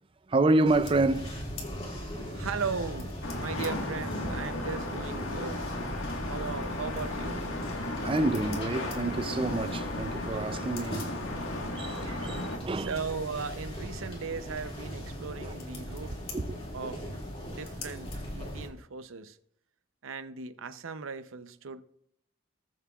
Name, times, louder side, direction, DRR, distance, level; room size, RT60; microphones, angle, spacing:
voice 1, 0.3-1.3 1.9-2.1 8.0-11.1 11.7-13.0 15.4-15.5 16.3-16.4, right 2 dB, 25° right, 0.4 m, -28 dB
sound 1, 0.6-18.7, equal, 30° left, 2.2 m, -39 dB
voice 2, 2.3-5.7 6.2-7.4 12.7-16.2 16.7-17.0 17.4-19.4 20.0-21.8, right 5 dB, 75° right, 0.6 m, -37 dB
sound 2, 3.2-12.6, left 2 dB, 90° left, 1.5 m, -35 dB
20.5 x 7.3 x 2.4 m
head